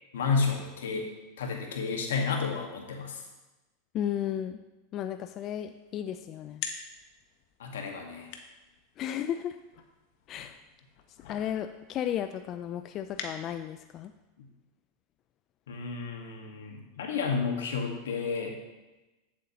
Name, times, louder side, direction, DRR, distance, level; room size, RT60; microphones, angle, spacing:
voice 1, 0.1-1.1 1.4-3.2 7.6-8.3 14.4-14.5 15.7-18.6, left 5 dB, 85° left, 2 dB, 1.3 m, -31 dB
voice 2, 3.9-4.6 4.9-6.6 9.0-9.6 10.3-10.6 11.3-14.1, left 10 dB, 40° left, 9 dB, 0.3 m, -34 dB
sound 1, 5.6-13.9, left 7 dB, 60° left, 0.9 m, -46 dB
8.3 x 7.5 x 2.8 m, 1.1 s
hypercardioid pair, 115°, 0 cm